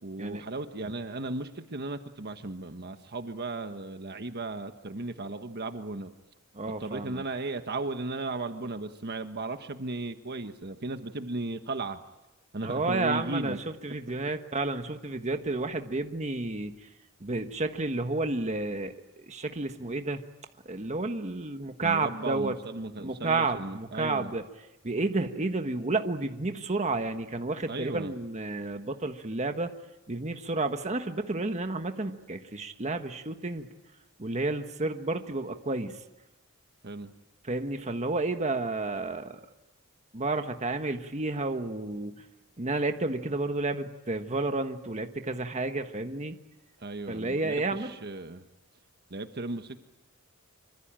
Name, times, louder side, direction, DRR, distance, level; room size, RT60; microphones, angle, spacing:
voice 1, 0.0-6.1 6.8-12.0 12.5-13.6 21.8-24.3 27.7-28.1 36.8-37.1 46.8-48.5 49.1-49.8, right 2 dB, 50° right, 7 dB, 1.3 m, -36 dB
voice 2, 6.5-7.2 12.6-13.6 13.8-16.9 17.2-18.9 19.2-20.2 20.6-22.5 23.0-24.4 24.8-29.7 30.1-33.7 34.2-36.0 37.4-39.4 40.1-42.2 42.6-46.4 47.1-47.9, right 3 dB, 35° right, 6 dB, 1.4 m, -31 dB
26.0 x 25.0 x 8.9 m, 1.0 s
head